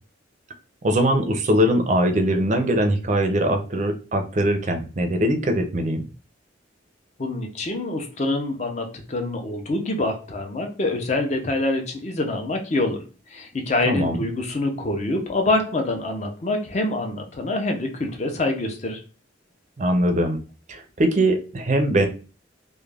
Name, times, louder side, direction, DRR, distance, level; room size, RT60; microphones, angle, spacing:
voice 1, 0.8-6.0 13.8-14.2 19.8-20.4 20.7-22.1, right 1 dB, 40° right, 5 dB, 0.4 m, -21 dB
voice 2, 7.2-13.0 13.3-19.0, left 2 dB, 35° left, 4 dB, 0.5 m, -25 dB
2.3 x 2.1 x 3.2 m, 0.36 s
head